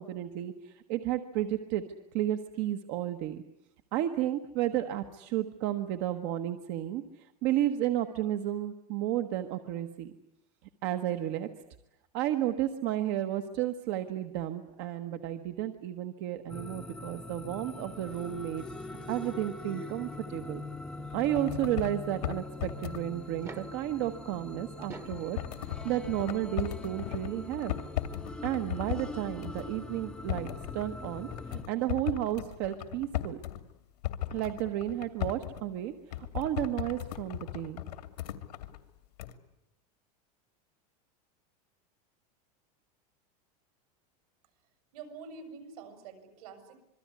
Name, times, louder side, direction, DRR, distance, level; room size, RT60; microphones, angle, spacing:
voice 1, 0.0-1.8 2.1-3.4 3.9-10.1 10.8-11.5 12.1-18.7 19.1-20.6 21.1-27.7 28.4-33.4 34.3-37.8, right 12 dB, 40° right, 8 dB, 1.3 m, -32 dB
sound 1, 16.5-31.6, left 3 dB, 5° left, 1.0 m, -43 dB
sound 2, 21.1-22.0 22.2-23.0 24.8-29.1 29.4-29.7 30.1-33.6 34.0-35.6 36.1-38.8 39.2-39.3, left 13 dB, 85° left, 2.5 m, -37 dB
sound 3, 23.2-23.9 24.7-25.3 26.6-26.7 28.5-28.6 28.8-28.9, right 4 dB, 15° right, 1.3 m, -45 dB
voice 2, 44.9-46.8, right 5 dB, 70° right, 8 dB, 6.7 m, -46 dB
26.5 x 23.0 x 9.7 m, 0.79 s
supercardioid pair, 175°, 20 cm